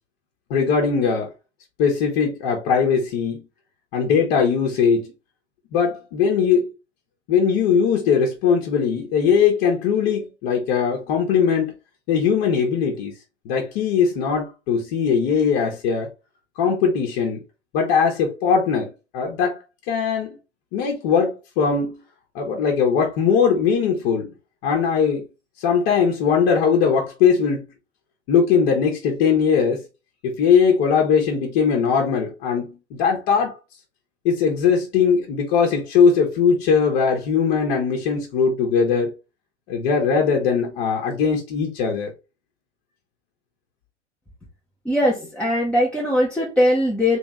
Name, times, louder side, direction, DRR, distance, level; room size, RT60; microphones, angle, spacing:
voice 1, 0.5-1.3 1.8-3.5 3.9-5.1 5.7-6.7 7.3-11.7 12.1-13.1 13.4-16.1 16.6-17.4 17.7-18.9 19.1-19.6 19.9-20.4 20.7-21.9 22.3-24.3 24.6-25.2 25.6-27.7 28.3-29.8 30.2-33.6 34.2-39.1 39.7-42.1, left 6 dB, 45° left, 1.4 m, -20 dB
voice 2, 44.8-47.2, left 1 dB, 5° left, 1.0 m, -20 dB
3.5 x 3.5 x 3.1 m
hypercardioid pair, 100°, 36 cm